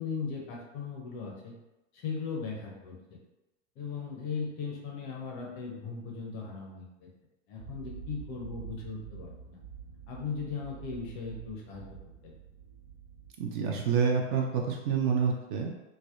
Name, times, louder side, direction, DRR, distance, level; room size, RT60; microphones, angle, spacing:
voice 1, 0.0-1.6 1.9-3.2 3.8-7.1 7.5-9.6 10.1-11.8 12.2-12.3, left 5 dB, 30° left, -1 dB, 0.4 m, -38 dB
sound 1, 7.6-13.3, right 8 dB, 85° right, 1.3 m, -47 dB
voice 2, 13.4-15.7, right 6 dB, 45° right, 1 dB, 0.4 m, -28 dB
2.6 x 2.0 x 2.3 m, 1.0 s
figure-of-eight pair, 90°, 37 cm